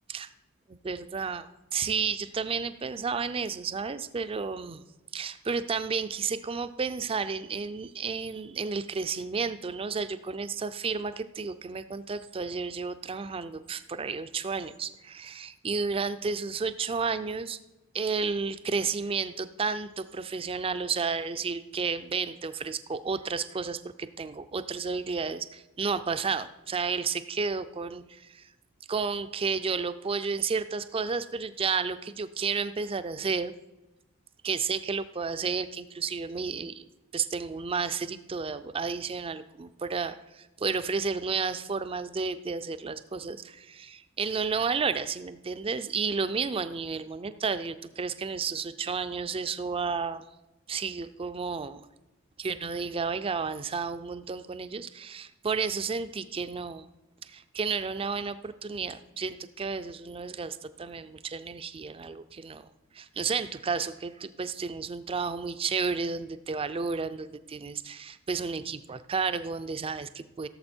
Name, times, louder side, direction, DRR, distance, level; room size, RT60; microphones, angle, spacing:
voice 1, 0.7-4.8 5.1-17.6 17.9-28.4 28.9-33.5 34.4-36.8 37.1-50.2 50.7-51.9 52.4-56.9 57.2-62.7 62.9-70.5, right 5 dB, 25° right, 12 dB, 0.4 m, -32 dB
16.0 x 7.0 x 4.4 m, 1.1 s
head